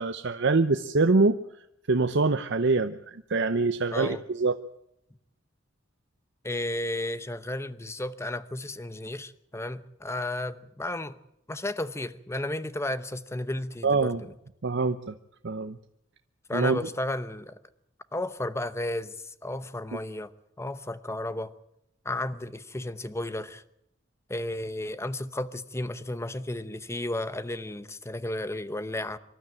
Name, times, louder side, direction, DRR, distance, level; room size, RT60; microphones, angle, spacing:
voice 1, 0.0-1.4 1.9-4.5 13.8-14.2 14.6-15.1 15.4-15.8 16.5-16.8, right 3 dB, 60° right, 0.8 m, -24 dB
voice 2, 3.9-4.2 6.4-11.2 11.5-14.3 16.5-17.6 18.1-20.3 20.6-21.5 22.0-23.6 24.3-29.2, left 1 dB, 15° left, 0.9 m, -33 dB
25.0 x 12.5 x 8.9 m
head